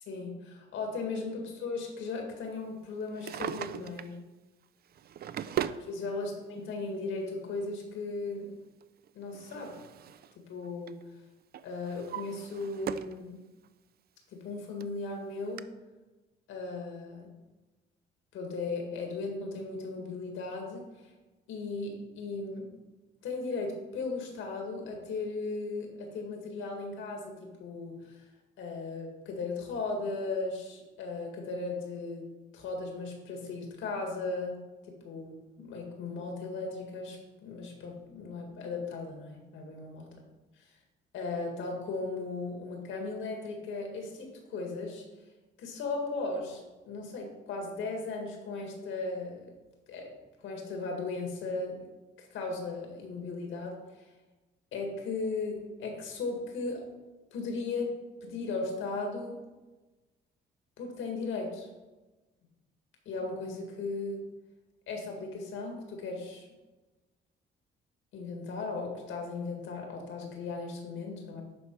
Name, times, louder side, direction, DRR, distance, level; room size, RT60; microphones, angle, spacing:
voice 1, 0.1-4.2 5.5-5.6 5.8-8.5 9.1-9.8 10.5-11.0 11.6-13.4 14.3-15.7 16.5-17.3 18.3-20.9 21.5-22.7 23.2-28.2 28.6-32.2 32.5-34.6 34.9-40.1 41.1-45.0 45.6-49.4 49.9-50.1 50.4-51.9 52.2-53.8 54.7-56.8 57.3-57.9 58.2-59.4 60.8-61.7 63.1-64.3 64.9-66.5 68.1-71.4, left 3 dB, 85° left, 1 dB, 2.0 m, -37 dB
Drawer open or close, 3.0-4.2 4.9-5.9 6.9-7.0 8.8-10.4 10.6-11.0 11.5-13.2 13.6-13.7 14.5-14.6 14.8-14.9 15.6-15.7, right 10 dB, 50° right, 0.4 m, -38 dB
11.0 x 4.2 x 4.6 m, 1.2 s
cardioid pair, 90°, 20 cm